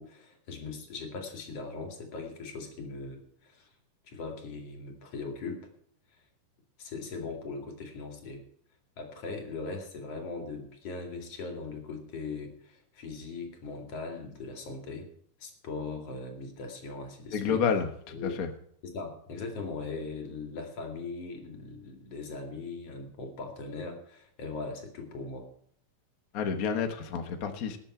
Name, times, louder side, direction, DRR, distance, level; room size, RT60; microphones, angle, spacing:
voice 1, 0.0-3.7 4.1-5.7 6.8-8.4 9.0-15.1 15.4-17.6 18.1-18.4 18.8-25.5, left 4 dB, 50° left, 4 dB, 3.2 m, -39 dB
voice 2, 17.3-18.5 26.3-27.8, left 6 dB, 75° left, 7 dB, 0.8 m, -30 dB
20.5 x 7.5 x 4.4 m, 0.65 s
omnidirectional pair, 3.7 m